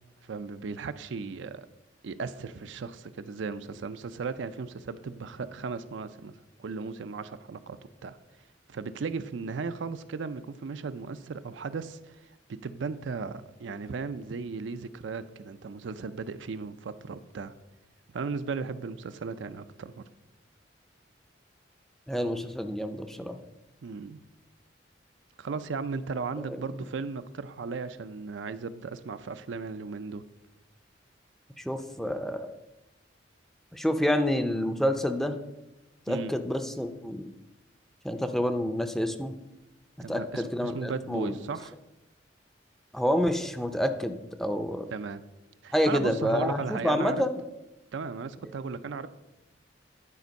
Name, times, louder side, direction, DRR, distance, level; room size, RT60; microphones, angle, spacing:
voice 1, 0.3-1.7 2.0-6.3 6.6-8.2 8.7-17.5 18.1-20.0 23.8-24.2 25.4-30.2 36.1-36.3 40.0-41.7 44.9-45.2 45.6-47.2 47.9-49.1, right 4 dB, 80° right, 12 dB, 0.4 m, -36 dB
voice 2, 22.1-23.4 26.5-26.6 31.6-32.5 33.7-35.4 36.1-37.3 38.0-39.3 40.1-41.3 42.9-44.1 44.4-44.9 45.7-47.4, equal, ahead, 8 dB, 0.5 m, -28 dB
11.0 x 4.4 x 5.2 m, 0.96 s
head